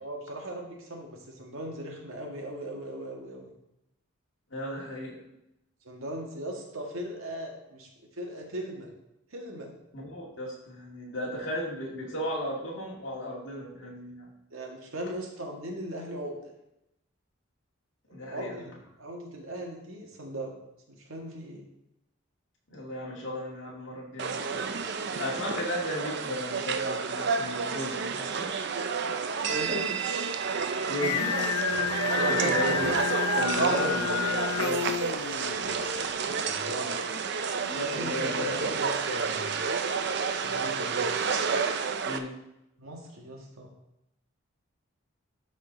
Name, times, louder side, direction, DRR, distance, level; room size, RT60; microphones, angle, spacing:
voice 1, 0.0-3.5 5.8-8.9 9.3-9.7 14.5-16.5 18.2-20.6 20.9-21.7 29.4-29.9 32.1-32.6 36.4-36.9 38.0-39.6 40.4-41.0 42.8-43.7, right 1 dB, 75° right, 1 dB, 1.7 m, -38 dB
voice 2, 4.5-5.2 9.9-14.3 18.1-18.6 22.7-24.6 25.2-28.5 30.8-32.9 33.2-34.9 37.6-38.7 42.0-42.4, equal, 60° left, -3 dB, 2.2 m, -35 dB
sound 1, 24.2-42.2, right 5 dB, 50° right, 0.5 m, -30 dB
Singing, 31.0-36.1, left 8 dB, 85° left, 0.5 m, -30 dB
12.0 x 4.3 x 4.0 m, 0.85 s
head